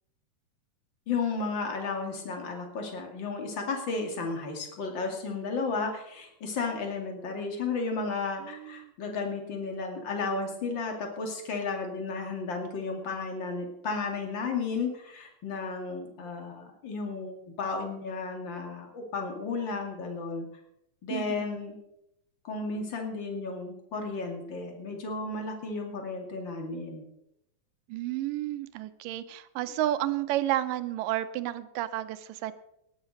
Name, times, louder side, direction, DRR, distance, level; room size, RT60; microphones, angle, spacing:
voice 1, 1.1-20.5 21.0-21.8 22.4-27.0, left 4 dB, 40° left, 3 dB, 2.7 m, -33 dB
voice 2, 8.4-8.9 21.1-21.5 27.9-32.5, right 13 dB, 85° right, 13 dB, 2.4 m, -31 dB
19.0 x 7.3 x 6.4 m, 0.80 s
omnidirectional pair, 3.7 m